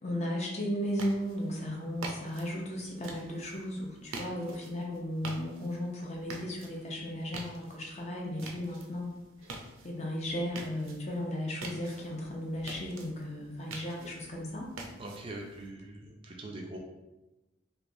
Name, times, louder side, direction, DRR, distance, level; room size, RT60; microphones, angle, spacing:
voice 1, 0.0-9.1 9.4-9.5 9.8-14.7, equal, 35° left, -1 dB, 0.6 m, -35 dB
sound 1, 0.8-15.7, right 3 dB, 90° right, 0.5 m, -47 dB
voice 2, 15.0-16.8, right 2 dB, 25° right, 0 dB, 0.3 m, -42 dB
3.3 x 2.8 x 2.6 m, 1.0 s
head